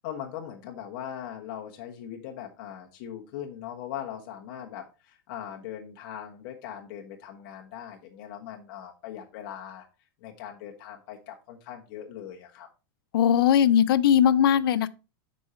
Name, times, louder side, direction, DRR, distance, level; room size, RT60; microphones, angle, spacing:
voice 1, 0.0-9.9 10.2-12.7, left 10 dB, 60° left, 1.3 m, -40 dB
voice 2, 13.1-14.9, left 9 dB, 80° left, 0.5 m, -20 dB
6.4 x 5.4 x 4.3 m
supercardioid pair, 125°, 12 cm